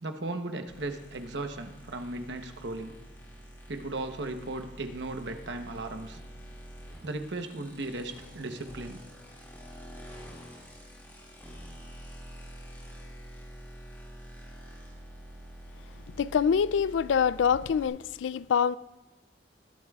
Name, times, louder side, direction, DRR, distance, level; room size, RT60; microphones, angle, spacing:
voice 1, 0.0-3.0 3.7-6.2 7.0-9.0, right 2 dB, 70° right, 0.9 m, -36 dB
sound 1, 0.7-17.9, equal, 10° left, 2.8 m, -47 dB
voice 2, 16.2-18.8, left 7 dB, 80° left, 0.3 m, -25 dB
20.0 x 11.0 x 2.4 m
head